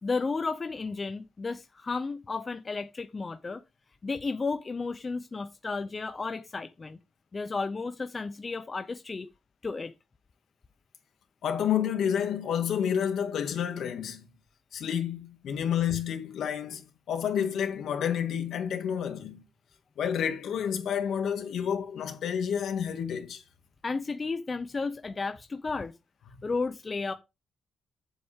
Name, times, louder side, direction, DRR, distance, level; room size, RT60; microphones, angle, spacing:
voice 1, 0.0-3.6 4.0-7.0 7.3-9.3 9.6-9.9 23.8-25.9 26.4-27.1, left 4 dB, 25° left, 0.7 m, -33 dB
voice 2, 11.4-14.3 14.7-19.4 20.0-23.4, left 8 dB, 65° left, 2.0 m, -29 dB
8.4 x 7.9 x 3.6 m
cardioid pair, 140°, 0 cm